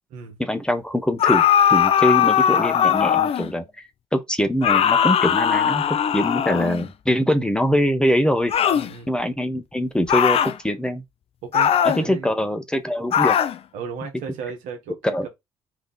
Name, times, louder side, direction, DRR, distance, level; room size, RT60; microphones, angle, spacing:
voice 1, 0.4-3.6 4.1-8.5 9.1-11.0 11.8-13.4 15.0-15.3, equal, 5° left, 0.9 m, -23 dB
sound 1, 1.2-3.5 4.6-6.9 8.5-8.9 10.1-10.6 11.5-12.0 13.1-13.6, left 9 dB, 45° left, 0.5 m, -19 dB
voice 2, 8.7-9.1 11.4-12.3 13.7-15.3, right 6 dB, 70° right, 1.2 m, -35 dB
3.8 x 2.8 x 3.4 m
hypercardioid pair, 55°, 14 cm